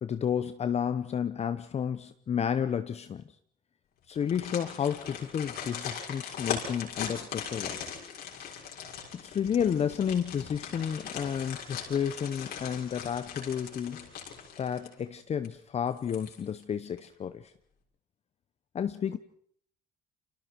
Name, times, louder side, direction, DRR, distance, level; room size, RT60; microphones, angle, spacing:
voice 1, 0.0-3.2 4.1-7.8 9.1-14.1 14.6-17.5 18.7-19.2, left 8 dB, 40° left, 11 dB, 0.9 m, -31 dB
sound 1, 4.1-15.1 15.4-15.5 16.0-16.6 17.0-17.1, left 7 dB, 70° left, 6.5 m, -40 dB
29.5 x 26.0 x 4.6 m, 0.64 s
cardioid pair, 110°, 17 cm